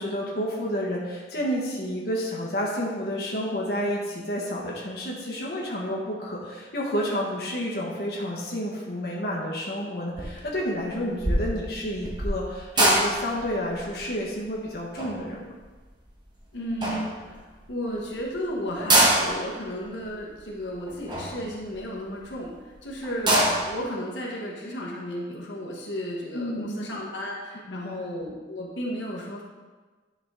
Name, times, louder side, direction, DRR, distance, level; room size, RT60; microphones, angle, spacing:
voice 1, 0.0-15.5 26.3-26.9 27.7-28.0, equal, 55° left, -4 dB, 1.3 m, -30 dB
sound 1, 10.1-10.5 10.8-16.3 16.8-17.6 18.0-18.1 18.3-18.4 18.7-22.3 22.7-22.8 23.0-23.8, right 1 dB, 25° right, 1.1 m, -25 dB
voice 2, 16.5-23.4 23.7-29.4, equal, 75° left, -3 dB, 1.3 m, -34 dB
9.9 x 4.8 x 3.7 m, 1.4 s
head